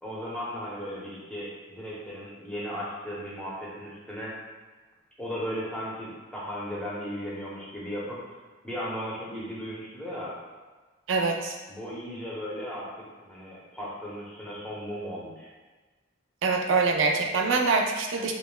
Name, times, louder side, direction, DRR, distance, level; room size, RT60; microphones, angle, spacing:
voice 1, 0.0-4.3 5.2-8.2 8.6-10.3 11.7-12.9 13.2-15.5, equal, 5° left, -7 dB, 0.7 m, -36 dB
voice 2, 11.1-11.6 16.4-18.3, right 4 dB, 70° right, 3 dB, 0.4 m, -24 dB
5.0 x 2.0 x 2.2 m, 1.3 s
head